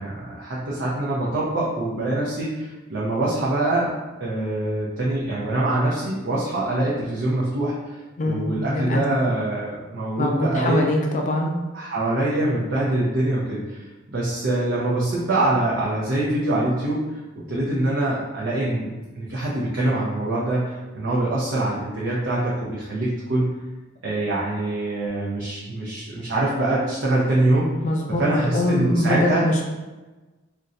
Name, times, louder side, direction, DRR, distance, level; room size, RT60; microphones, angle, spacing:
voice 1, 0.0-3.9 4.2-8.0 8.2-10.8 11.7-13.8 14.1-18.9 19.1-23.5 24.0-27.7 28.1-29.5, right 1 dB, 60° right, -6 dB, 0.6 m, -24 dB
voice 2, 8.2-9.0 10.2-11.5 27.8-28.2 28.5-29.6, left 1 dB, 35° left, 1 dB, 0.3 m, -23 dB
2.5 x 2.2 x 3.9 m, 1.2 s
head